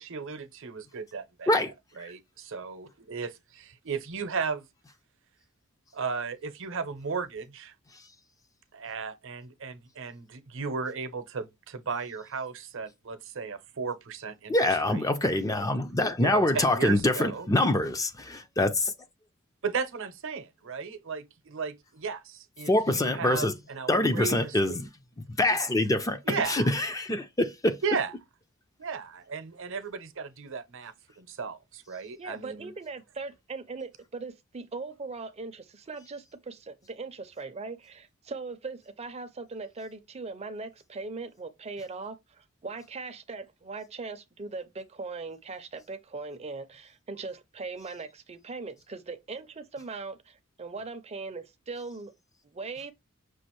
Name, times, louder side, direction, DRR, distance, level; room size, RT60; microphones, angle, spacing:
voice 1, 0.0-1.5 2.0-4.7 5.9-7.7 8.7-14.5 14.9-15.0 16.2-17.5 19.6-24.8 26.3-26.7 27.8-28.1 28.8-32.7, right 5 dB, 65° right, 0.8 m, -35 dB
voice 2, 14.5-18.9 22.7-23.5 23.9-24.9 25.4-27.8, left 1 dB, 15° left, 0.4 m, -25 dB
voice 3, 32.2-52.1 52.4-52.9, right 3 dB, 30° right, 0.5 m, -40 dB
6.2 x 2.5 x 3.0 m
head